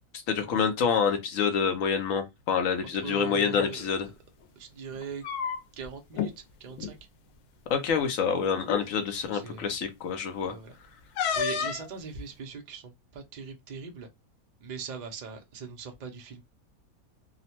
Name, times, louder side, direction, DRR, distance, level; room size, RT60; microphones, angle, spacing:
voice 1, 0.3-4.1 7.7-10.5, left 6 dB, 70° left, 0.9 m, -27 dB
voice 2, 3.0-4.1 4.6-5.2 5.8-7.0 9.3-9.7 10.5-10.8 11.3-14.1 14.6-16.4, right 6 dB, 70° right, 0.4 m, -40 dB
sound 1, 3.4-3.7 5.0-5.9 6.1-6.3 6.7-6.9 7.9-8.0 8.6-8.9 11.2-11.9, left 7 dB, 90° left, 1.1 m, -30 dB
2.8 x 2.1 x 2.8 m
omnidirectional pair, 1.6 m